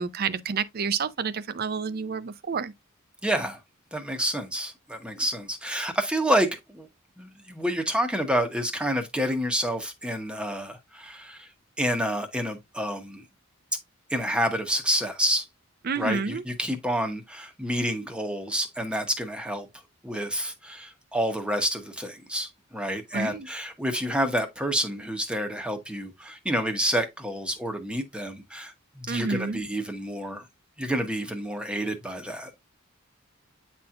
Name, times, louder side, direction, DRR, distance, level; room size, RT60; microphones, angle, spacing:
voice 1, 0.0-2.7 15.8-16.4 23.1-23.5 29.1-29.6, right 5 dB, 45° right, 0.5 m, -29 dB
voice 2, 3.2-3.6 3.9-6.5 6.7-6.9 7.2-11.5 11.8-13.2 14.1-15.4 16.0-19.7 20.0-30.4 30.8-32.5, equal, 5° right, 1.0 m, -28 dB
9.0 x 4.3 x 2.4 m
head